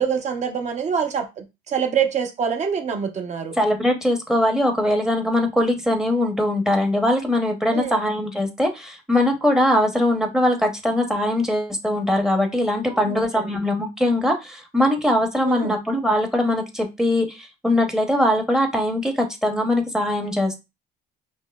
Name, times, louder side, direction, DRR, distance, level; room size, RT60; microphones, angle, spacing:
voice 1, 0.0-3.6 7.7-8.0 12.9-13.6 15.4-15.7, right 7 dB, 45° right, 0.8 m, -25 dB
voice 2, 3.6-20.6, left 1 dB, 5° right, 0.8 m, -21 dB
5.2 x 2.1 x 2.3 m
cardioid pair, 110°, 17 cm